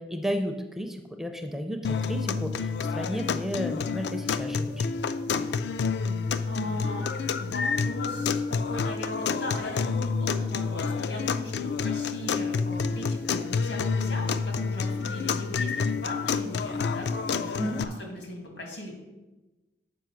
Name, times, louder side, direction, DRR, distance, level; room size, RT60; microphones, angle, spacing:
voice 1, 0.0-4.9 17.6-17.8, equal, ahead, 4 dB, 0.4 m, -33 dB
sound 1, 1.8-17.8, left 5 dB, 65° left, 0.3 m, -29 dB
voice 2, 6.5-7.1 7.4-18.9, left 1 dB, 85° left, 1 dB, 2.1 m, -39 dB
6.8 x 5.1 x 6.1 m, 1.1 s
head